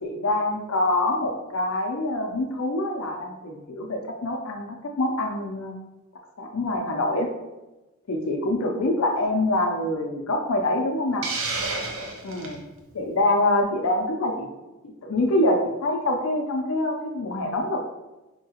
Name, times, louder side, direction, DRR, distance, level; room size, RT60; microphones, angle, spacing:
voice 1, 0.0-5.8 6.4-7.3 8.1-11.3 12.2-12.6 12.9-14.5 14.8-17.9, left 1 dB, 85° left, 2 dB, 0.5 m, -25 dB
Hiss, 11.2-12.6, right 3 dB, 80° right, 0.7 m, -30 dB
4.5 x 2.8 x 2.8 m, 1.0 s
head